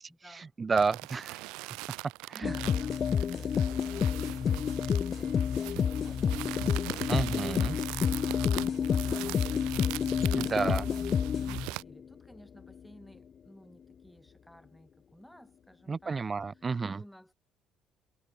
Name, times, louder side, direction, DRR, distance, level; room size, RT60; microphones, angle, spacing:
voice 1, 0.0-0.6 2.3-10.7 11.3-17.3, equal, 5° left, 6.9 m, -57 dB
voice 2, 0.6-1.7 2.3-2.5 7.1-7.8 10.3-10.9 15.9-17.0, right 4 dB, 35° right, 1.3 m, -31 dB
sound 1, 0.8-11.8, right 26 dB, 85° right, 1.4 m, -41 dB
sound 2, 2.4-11.9, left 7 dB, 50° left, 0.3 m, -29 dB
supercardioid pair, 65°, 0 cm